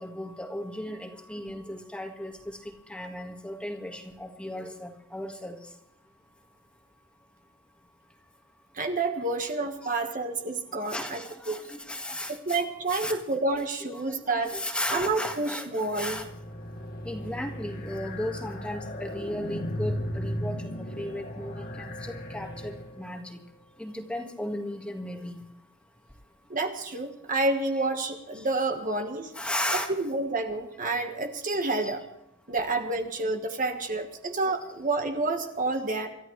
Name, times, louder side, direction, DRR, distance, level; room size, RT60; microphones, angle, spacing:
voice 1, 0.0-2.6 2.9-5.6 10.9-12.6 12.9-13.2 13.5-14.0 14.3-16.2 17.1-20.6 21.0-23.4 23.8-25.4 27.7-27.8 29.4-29.9 31.8-31.9, left 1 dB, 5° left, 2 dB, 1.8 m, -35 dB
voice 2, 8.7-11.2 11.5-11.6 12.3-14.5 14.9-16.2 26.5-29.3 29.7-32.0 32.5-36.1, right 2 dB, 40° right, 4 dB, 1.5 m, -29 dB
sound 1, 15.8-23.2, equal, 45° left, 1.7 m, -36 dB
28.5 x 14.0 x 3.3 m, 0.80 s
head